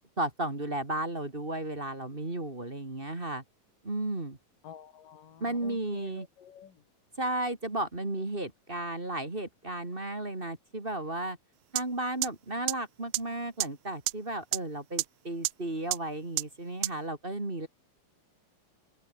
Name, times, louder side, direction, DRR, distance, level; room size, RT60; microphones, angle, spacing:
voice 1, 0.2-3.4 3.8-4.4 5.4-6.3 7.2-11.4 11.7-17.7, right 1 dB, 15° right, 2.7 m, -34 dB
voice 2, 4.6-6.7, left 9 dB, 80° left, 3.9 m, -49 dB
sound 1, 11.8-11.9 12.2-12.3 12.7-12.8 13.1-13.2 13.6-13.7 14.1-14.2 14.5-14.6 15.0-15.1 15.4-15.5 15.9-16.0 16.4-16.5 16.8-16.9, right 21 dB, 90° right, 1.6 m, -27 dB
open air
omnidirectional pair, 3.8 m